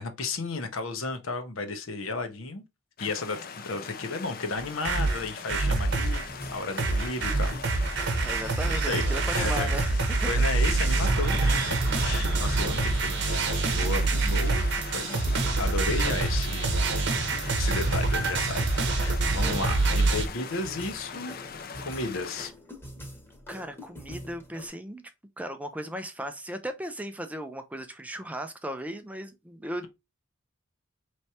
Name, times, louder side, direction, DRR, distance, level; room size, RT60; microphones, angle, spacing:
voice 1, 0.0-2.6 3.0-6.2 6.5-7.6 8.7-9.1 9.3-9.7 10.3-13.5 13.8-15.2 15.5-16.7 17.6-21.4 21.8-22.5, left 3 dB, 70° left, 0.9 m, -33 dB
sound 1, 3.0-22.5, left 6 dB, 45° left, 0.5 m, -41 dB
sound 2, 4.6-6.3 6.8-20.3, right 3 dB, 55° right, 0.8 m, -26 dB
sound 3, 6.3-24.7, left 1 dB, 10° left, 1.0 m, -45 dB
voice 2, 8.2-10.3 19.4-19.5 21.8-22.1 22.4-22.5 23.5-25.0 25.4-29.9, equal, 5° right, 0.4 m, -37 dB
4.5 x 3.2 x 2.7 m
head